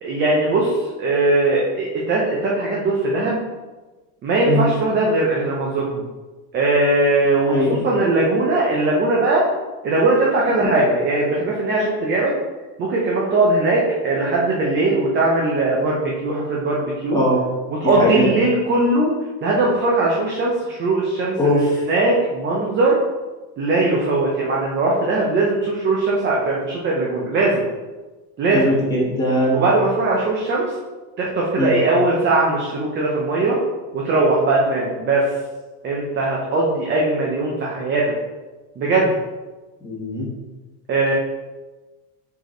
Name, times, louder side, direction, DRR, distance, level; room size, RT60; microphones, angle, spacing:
voice 1, 0.0-3.4 4.2-6.1 6.5-9.5 9.8-12.4 12.8-17.2 17.8-19.1 19.4-21.6 21.9-23.0 23.6-27.6 28.4-28.8 29.5-30.8 31.2-33.6 33.9-35.3 35.8-38.1 38.8-39.2 40.9-41.1, right 2 dB, 25° right, -3 dB, 0.7 m, -20 dB
voice 2, 7.5-7.8 10.6-10.7 17.1-17.4 17.8-18.3 21.4-21.8 28.5-29.6 31.6-31.7 39.8-40.2, left 1 dB, 10° left, -7 dB, 1.6 m, -20 dB
5.0 x 4.7 x 3.9 m, 1.2 s
cardioid pair, 175°, 40 cm